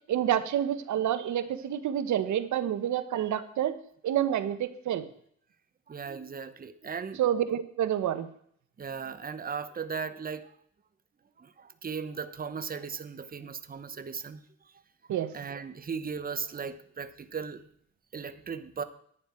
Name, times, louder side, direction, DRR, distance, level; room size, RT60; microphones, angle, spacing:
voice 1, 0.1-3.7 4.0-5.0 7.2-8.3 15.1-15.3, right 10 dB, 70° right, 11 dB, 1.1 m, -28 dB
voice 2, 5.9-7.2 8.8-10.5 11.4-14.7 15.3-17.6 18.1-18.8, right 6 dB, 30° right, 11 dB, 1.0 m, -37 dB
11.0 x 9.3 x 4.5 m, 0.65 s
cardioid pair, 90°, 30 cm